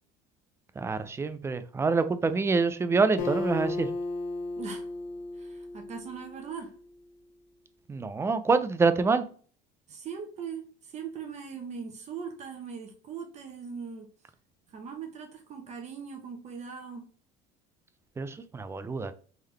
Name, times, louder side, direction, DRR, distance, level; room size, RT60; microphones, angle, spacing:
voice 1, 0.8-3.9 7.9-9.2 18.2-19.1, right 4 dB, 15° right, 0.3 m, -26 dB
Acoustic guitar, 3.2-6.8, left 3 dB, 90° left, 0.9 m, -35 dB
voice 2, 4.6-4.9 5.3-6.7 9.9-14.1 14.7-17.0, right 6 dB, 40° right, 0.9 m, -40 dB
3.7 x 3.3 x 3.3 m
cardioid pair, 130°, 19 cm